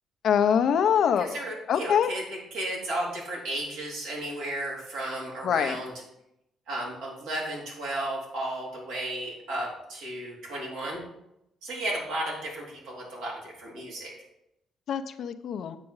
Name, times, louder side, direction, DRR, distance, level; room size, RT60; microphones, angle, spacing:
voice 1, 0.2-1.4 1.7-2.1 5.4-5.8 14.9-15.8, left 8 dB, 70° left, 9 dB, 0.7 m, -24 dB
voice 2, 1.2-5.9 6.7-11.0 11.6-14.1, right 1 dB, 90° right, -4 dB, 3.4 m, -34 dB
8.5 x 6.1 x 4.7 m, 0.83 s
cardioid pair, 90°, 0 cm